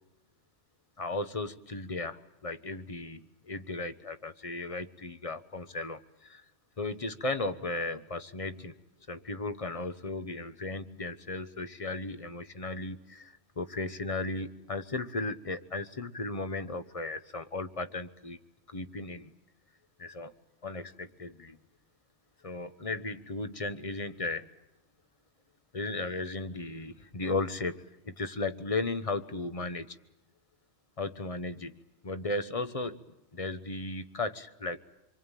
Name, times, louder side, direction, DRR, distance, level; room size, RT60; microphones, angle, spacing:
voice 1, 1.0-6.4 6.8-8.7 9.1-18.4 18.7-19.3 20.0-20.3 20.6-21.6 22.4-24.5 25.7-27.8 28.0-30.0 31.0-31.7 32.0-33.0 33.3-34.8, left 2 dB, 30° left, 12 dB, 1.1 m, -35 dB
26.5 x 24.5 x 9.1 m, 0.90 s
omnidirectional pair, 1.2 m